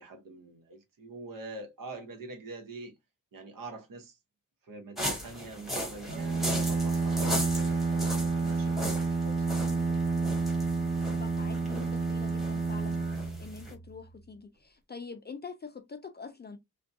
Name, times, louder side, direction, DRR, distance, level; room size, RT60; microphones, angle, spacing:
voice 1, 0.0-2.9 3.3-4.2 4.6-9.8, right 2 dB, 80° right, 1.0 m, -45 dB
sound 1, 5.0-13.7, equal, ahead, 1.1 m, -38 dB
Bowed string instrument, 6.1-14.1, right 3 dB, 30° right, 0.9 m, -30 dB
voice 2, 9.6-16.6, left 5 dB, 30° left, 0.4 m, -46 dB
3.4 x 2.2 x 2.6 m
wide cardioid pair, 155°, 33 cm